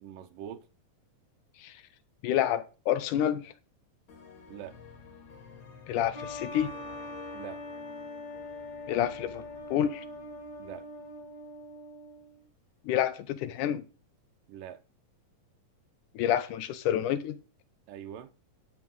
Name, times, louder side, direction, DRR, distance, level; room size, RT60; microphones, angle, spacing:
voice 1, 0.0-0.7 4.5-4.8 7.3-7.6 10.6-10.9 14.5-14.8 17.9-18.3, right 10 dB, 85° right, 2.5 m, -43 dB
voice 2, 2.2-3.5 5.9-6.7 8.9-9.4 9.7-10.0 12.8-13.8 16.2-17.4, left 11 dB, 75° left, 2.3 m, -28 dB
sound 1, 4.1-11.7, left 6 dB, 60° left, 2.9 m, -53 dB
sound 2, 6.1-12.4, left 2 dB, 45° left, 1.5 m, -42 dB
11.0 x 6.0 x 5.4 m
omnidirectional pair, 3.8 m